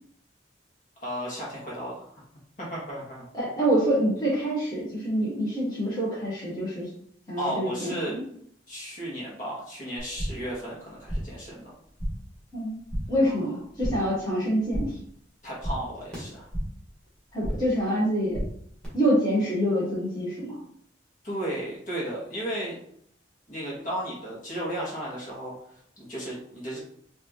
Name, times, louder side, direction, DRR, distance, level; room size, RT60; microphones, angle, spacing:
voice 1, 1.0-2.1 2.6-3.3 7.4-8.2 8.7-11.7 13.2-13.4 15.4-16.5 21.2-22.8 23.5-25.5 26.0-26.8, right 1 dB, 45° left, -6 dB, 1.7 m, -34 dB
voice 2, 3.3-6.9 7.3-8.2 12.5-12.8 13.1-14.9 17.3-18.4 18.9-20.6, equal, 20° left, -8 dB, 1.5 m, -26 dB
sound 1, 10.0-10.5 10.8-11.4 11.7-12.3 12.6-13.2 13.5-14.2 14.5-15.1 15.3-16.9 17.1-17.8 18.0-18.8, equal, 5° left, 1.7 m, -34 dB
4.6 x 2.8 x 3.1 m, 0.65 s
head